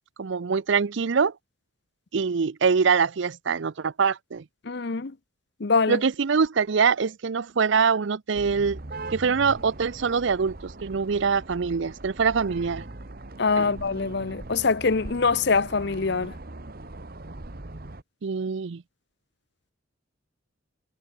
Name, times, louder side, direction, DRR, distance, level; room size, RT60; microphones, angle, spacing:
voice 1, 0.2-1.3 2.1-4.4 5.9-8.8 9.1-12.8 13.6-13.7 18.2-18.8, right 5 dB, 65° right, 0.5 m, -24 dB
voice 2, 4.7-5.1 5.6-6.0 13.4-16.3, left 4 dB, 55° left, 0.7 m, -24 dB
sound 1, 8.3-18.0, right 2 dB, 45° right, 1.4 m, -40 dB
head